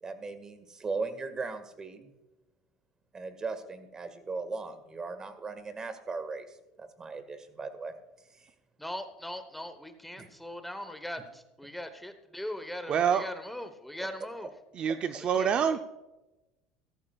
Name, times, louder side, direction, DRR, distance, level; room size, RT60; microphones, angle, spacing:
voice 1, 0.0-2.1 3.1-6.5 6.8-7.9 8.3-8.5 10.2-10.3, right 4 dB, 25° right, 9 dB, 1.7 m, -38 dB
voice 2, 8.8-14.5 15.2-15.8, left 1 dB, 5° left, 9 dB, 1.1 m, -40 dB
voice 3, 12.9-13.2 14.8-15.8, right 7 dB, 45° right, 8 dB, 0.6 m, -26 dB
15.5 x 14.0 x 2.4 m, 1.0 s
supercardioid pair, 100°, 3 cm